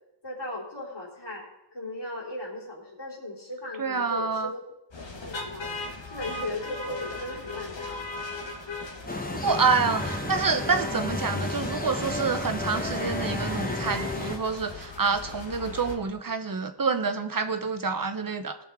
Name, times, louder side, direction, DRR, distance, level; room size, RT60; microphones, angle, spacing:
voice 1, 0.2-1.5 1.7-4.6 5.2-5.7 6.1-8.1, left 1 dB, 65° left, -2 dB, 3.5 m, -37 dB
voice 2, 3.8-4.5 9.3-18.6, right 5 dB, 50° right, 8 dB, 0.9 m, -27 dB
sound 1, 4.9-16.0, left 3 dB, 90° left, 1.7 m, -38 dB
sound 2, 9.1-14.4, left 2 dB, 20° left, 1.3 m, -32 dB
19.0 x 6.4 x 3.6 m, 0.89 s
wide cardioid pair, 55°, 44 cm